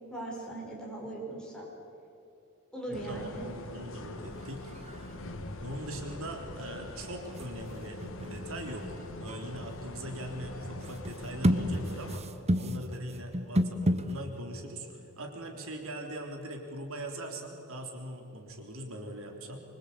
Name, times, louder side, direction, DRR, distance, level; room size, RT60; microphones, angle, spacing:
voice 1, 0.1-1.7 2.7-3.5, right 2 dB, 5° left, -4 dB, 6.3 m, -39 dB
sound 1, 2.9-12.2, left 1 dB, 65° left, 2.0 m, -43 dB
voice 2, 2.9-4.7 5.6-8.9 9.2-12.2 12.6-19.6, right 1 dB, 65° right, 3 dB, 3.6 m, -41 dB
sound 2, 4.4-4.5 4.7-5.2 7.1-14.4, equal, 30° right, 1.2 m, -32 dB
25.0 x 25.0 x 8.5 m, 2.8 s
head